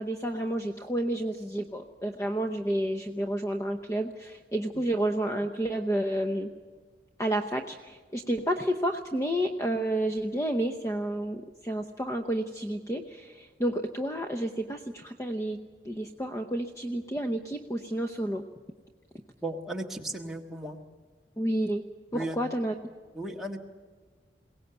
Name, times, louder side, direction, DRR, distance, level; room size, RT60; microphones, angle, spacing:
voice 1, 0.0-6.5 7.2-15.6 15.8-18.4 21.4-21.8 22.1-22.7, right 1 dB, 15° left, 6 dB, 0.8 m, -30 dB
voice 2, 19.4-20.8 22.1-22.4 23.1-23.6, right 1 dB, ahead, 0 dB, 1.6 m, -35 dB
22.0 x 18.0 x 8.0 m, 1.5 s
head